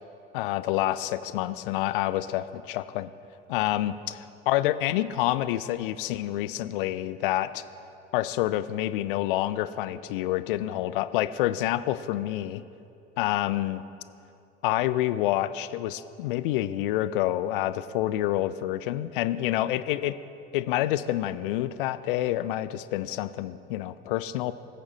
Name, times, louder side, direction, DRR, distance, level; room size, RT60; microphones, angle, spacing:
voice 1, 0.3-3.1 3.5-7.6 8.1-12.6 13.2-13.8 14.6-20.2 20.5-24.5, left 14 dB, 55° left, 15 dB, 0.4 m, -28 dB
19.0 x 8.6 x 2.6 m, 2.7 s
figure-of-eight pair, 70°, 33 cm